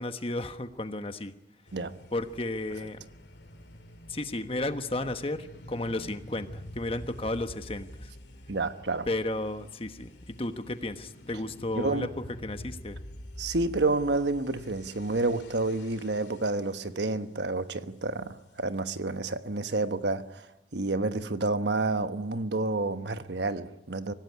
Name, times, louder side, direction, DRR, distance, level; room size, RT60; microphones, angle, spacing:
voice 1, 0.0-1.3 2.1-3.0 4.1-8.1 9.1-12.1 12.4-13.0, left 2 dB, 30° left, 1.2 m, -33 dB
sound 1, 1.7-16.9, left 1 dB, 75° left, 2.4 m, -47 dB
voice 2, 8.5-9.1 11.7-12.1 13.4-20.5 20.7-24.1, right 2 dB, 75° right, 1.2 m, -29 dB
25.5 x 17.0 x 9.7 m
head